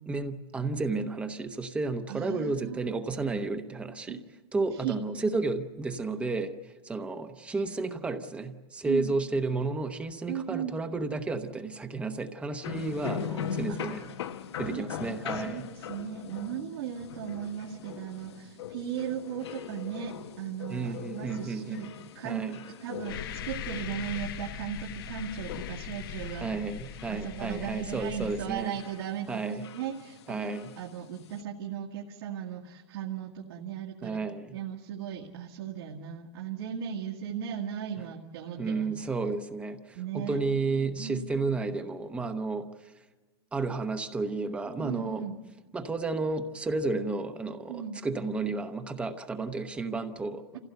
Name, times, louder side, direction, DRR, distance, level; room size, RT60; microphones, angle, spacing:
voice 1, 0.1-4.2 4.5-14.1 14.6-15.7 20.7-21.9 22.2-22.6 26.4-28.7 29.3-29.6 30.3-30.7 34.0-34.6 38.6-42.9 43.5-45.2 45.7-50.6, right 3 dB, 10° right, 8 dB, 0.8 m, -32 dB
voice 2, 2.1-3.0 4.1-4.2 4.6-5.0 8.8-9.1 10.3-10.7 13.7-14.8 15.3-26.5 27.1-34.2 34.5-38.8 40.0-40.4 41.0-41.2 44.8-45.4 47.7-48.0, right 9 dB, 65° right, -1 dB, 1.9 m, -37 dB
sound 1, 12.6-31.4, left 8 dB, 85° left, 1.1 m, -41 dB
sound 2, 23.1-28.6, left 8 dB, 60° left, 1.1 m, -40 dB
27.0 x 16.0 x 8.0 m, 1.3 s
supercardioid pair, 165°, 14 cm